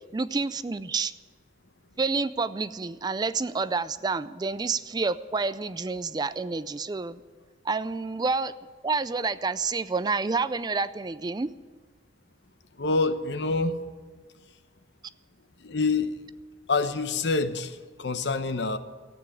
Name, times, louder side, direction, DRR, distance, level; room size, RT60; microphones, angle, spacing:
voice 1, 0.1-1.1 2.0-7.2 7.6-8.5 8.8-11.5, right 4 dB, 25° right, 15 dB, 0.4 m, -28 dB
voice 2, 12.8-13.7 15.6-16.1 16.7-18.8, left 3 dB, 70° left, 10 dB, 0.9 m, -26 dB
14.5 x 9.0 x 10.0 m, 1.5 s
head